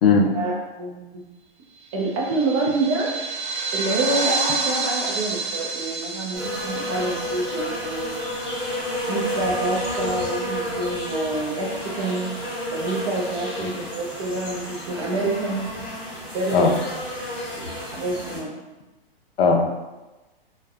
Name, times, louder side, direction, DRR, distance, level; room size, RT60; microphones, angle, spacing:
voice 1, 0.3-1.2 1.9-3.2 3.7-8.2 9.1-12.3 12.7-15.7 16.3-17.0 17.5-18.5, right 2 dB, 35° right, -2 dB, 0.6 m, -27 dB
sound 1, 1.9-8.8, right 3 dB, 75° right, 1.2 m, -29 dB
sound 2, 6.3-18.4, equal, 5° right, 1.0 m, -30 dB
voice 2, 19.4-19.7, left 4 dB, 70° left, 3 dB, 0.6 m, -18 dB
3.3 x 2.2 x 2.3 m, 1.1 s
hypercardioid pair, 145°, 31 cm